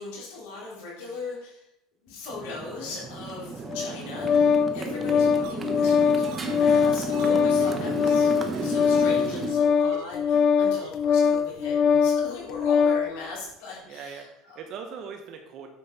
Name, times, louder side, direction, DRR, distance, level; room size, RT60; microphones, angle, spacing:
voice 1, 0.0-1.7 2.0-8.3 8.6-14.6, left 3 dB, 85° left, -4 dB, 4.3 m, -39 dB
Motorcycle, 2.3-9.5, right 4 dB, 25° right, 1.1 m, -34 dB
Organ, 3.7-13.1, left 6 dB, 45° left, 0.4 m, -22 dB
sound 1, 5.4-5.5 5.8-5.9 6.2-8.3 8.5-8.7 8.9-9.1 9.5-9.6 9.8-10.0 10.3-10.4 10.7-10.9 11.2-11.3 11.6-11.7, right 11 dB, 75° right, 0.9 m, -41 dB
voice 2, 13.9-15.7, right 6 dB, 50° right, 4 dB, 1.0 m, -40 dB
9.0 x 7.8 x 4.2 m, 0.81 s
cardioid pair, 140°, 0 cm